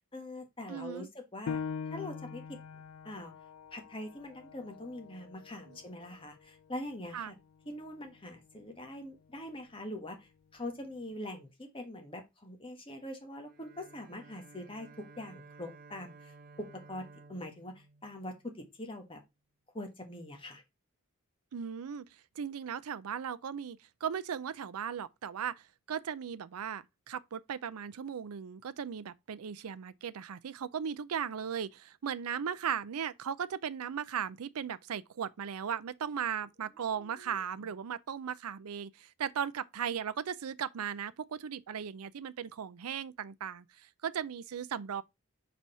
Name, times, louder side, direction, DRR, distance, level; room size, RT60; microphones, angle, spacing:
voice 1, 0.1-1.6 1.9-2.6 3.0-3.3 3.7-7.4 7.6-19.2 19.7-20.6 36.8-37.4, left 1 dB, 25° left, 1.3 m, -43 dB
voice 2, 0.7-1.1 5.7-5.8 7.1-7.3 21.5-45.0, right 8 dB, 85° right, 0.5 m, -37 dB
Piano, 1.5-6.6 7.1-7.2 7.8-8.3, left 6 dB, 65° left, 0.3 m, -43 dB
Bowed string instrument, 13.4-18.9, right 3 dB, 40° right, 0.6 m, -55 dB
4.8 x 4.0 x 5.5 m
head